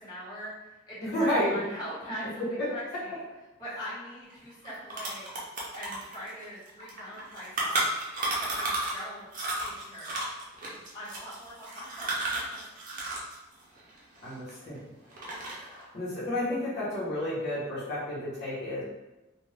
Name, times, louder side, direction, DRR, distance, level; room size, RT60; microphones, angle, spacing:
voice 1, 0.0-3.2 3.6-5.3 5.7-7.9 8.3-9.3 9.6-10.2 10.9-12.8, equal, 20° left, -11 dB, 1.4 m, -42 dB
voice 2, 1.0-1.5 14.2-14.8 15.3-18.8, left 1 dB, 60° left, -10 dB, 1.0 m, -31 dB
sound 1, 4.3-4.4 4.6-9.0 9.3-13.3 13.6-14.8 15.1-15.7, right 2 dB, 45° right, 0.7 m, -33 dB
2.5 x 2.3 x 3.3 m, 1.0 s
head